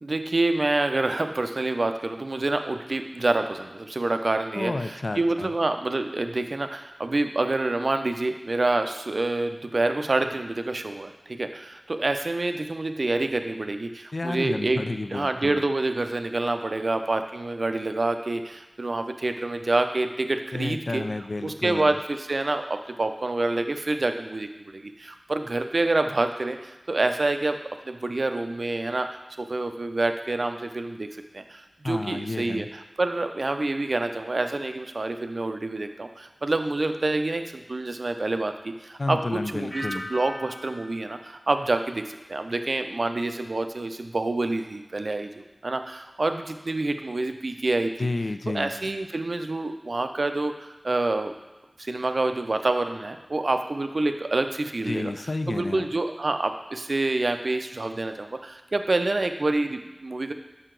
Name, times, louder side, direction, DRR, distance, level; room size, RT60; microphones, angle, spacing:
voice 1, 0.0-14.8 15.1-21.0 21.4-27.6 27.9-29.1 29.4-31.1 31.3-39.2 39.5-48.1 48.5-51.3 51.8-55.1 55.5-60.3, right 2 dB, 75° right, 7 dB, 0.4 m, -27 dB
voice 2, 4.5-5.5 14.1-15.6 20.5-22.0 31.8-32.7 39.0-40.0 48.0-48.7 54.9-55.9, left 2 dB, 70° left, 8 dB, 0.3 m, -30 dB
sound 1, 39.7-42.5 42.9-43.4, left 1 dB, 10° left, 1.1 m, -41 dB
5.6 x 4.6 x 3.8 m, 1.1 s
wide cardioid pair, 45°, 0 cm